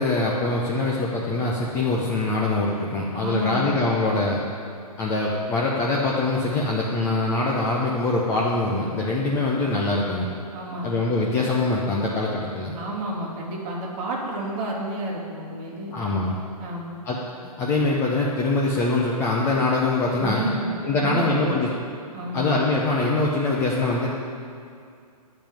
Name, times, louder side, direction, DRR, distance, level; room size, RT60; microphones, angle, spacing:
voice 1, 0.0-4.4 5.0-10.3 10.8-12.8 15.9-16.4 17.1-17.2 17.6-20.4 20.8-21.7 22.3-24.1, left 2 dB, 15° left, -3 dB, 0.7 m, -23 dB
voice 2, 3.1-3.8 10.5-10.9 12.7-16.0 16.6-17.0 20.2-21.6 22.1-22.5, right 1 dB, 25° right, -4 dB, 2.7 m, -30 dB
14.5 x 5.4 x 9.0 m, 2.4 s
hypercardioid pair, 160°, 20 cm